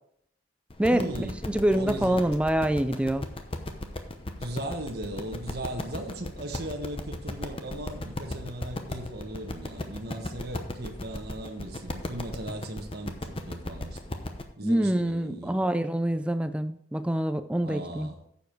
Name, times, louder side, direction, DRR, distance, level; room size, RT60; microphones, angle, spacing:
sound 1, 0.7-14.4, left 1 dB, 25° left, 0.8 m, -36 dB
voice 1, 0.9-1.4 1.7-2.3 4.4-14.2 14.6-15.6 17.6-18.2, right 1 dB, 50° right, 3 dB, 1.3 m, -37 dB
voice 2, 1.5-3.3 14.6-18.1, right 1 dB, 5° right, 11 dB, 0.3 m, -25 dB
10.0 x 7.1 x 4.5 m, 0.70 s
head